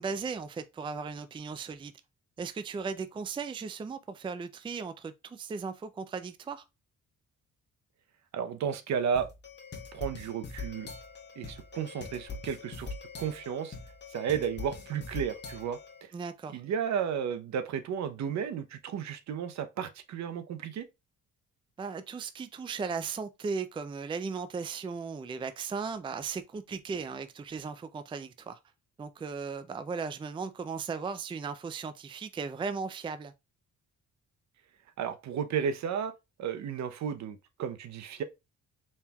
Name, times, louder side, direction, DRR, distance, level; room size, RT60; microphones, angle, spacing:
voice 1, 0.0-1.9 2.4-6.6 16.1-16.6 21.8-28.6 29.0-33.3, right 5 dB, 15° right, 0.4 m, -37 dB
voice 2, 8.3-9.3 9.9-10.9 11.4-13.7 14.1-16.1 16.5-20.9 35.0-36.1 36.4-38.2, right 7 dB, 65° right, 0.7 m, -33 dB
sound 1, 9.2-16.0, left 3 dB, 35° left, 1.1 m, -43 dB
4.4 x 3.6 x 2.3 m
cardioid pair, 90°, 30 cm